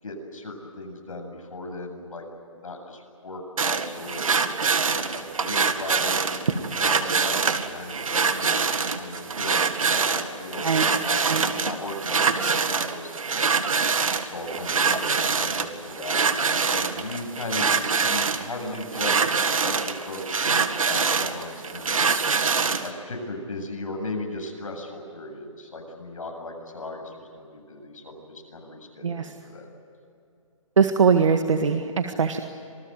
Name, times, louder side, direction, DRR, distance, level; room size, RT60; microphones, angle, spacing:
voice 1, 0.0-2.2 2.6-4.2 4.9-13.5 14.2-19.3 19.6-22.0 22.8-29.7, left 2 dB, 85° left, 3 dB, 7.9 m, -37 dB
sound 1, 3.6-22.9, right 5 dB, 85° right, 2.1 m, -25 dB
voice 2, 29.0-29.3 30.8-32.4, right 6 dB, 65° right, 6 dB, 1.8 m, -21 dB
27.0 x 20.5 x 9.5 m, 2.7 s
hypercardioid pair, 170°, 17 cm